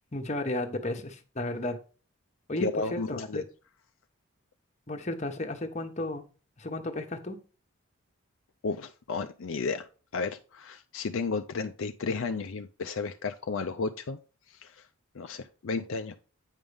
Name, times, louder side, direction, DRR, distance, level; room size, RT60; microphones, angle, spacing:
voice 1, 0.1-1.8 2.5-3.4 4.9-6.2 6.6-7.4, left 1 dB, 30° left, 5 dB, 1.0 m, -33 dB
voice 2, 2.6-3.4 8.6-14.2 14.5-14.9 15.1-16.2, left 4 dB, 65° left, 7 dB, 0.5 m, -33 dB
9.0 x 5.4 x 3.5 m, 0.36 s
head